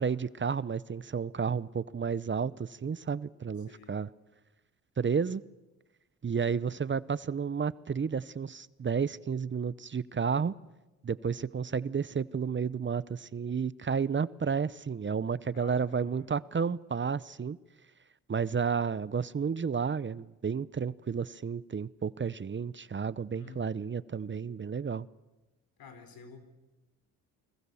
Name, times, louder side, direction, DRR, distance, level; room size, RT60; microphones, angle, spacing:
voice 1, 0.0-4.1 5.0-5.4 6.2-10.5 11.0-17.6 18.3-25.1, right 6 dB, 35° right, 18 dB, 0.8 m, -31 dB
voice 2, 15.5-16.3 23.3-23.8 25.8-26.4, left 4 dB, 75° left, 8 dB, 4.7 m, -51 dB
29.0 x 20.5 x 7.1 m, 1.1 s
supercardioid pair, 60°, 36 cm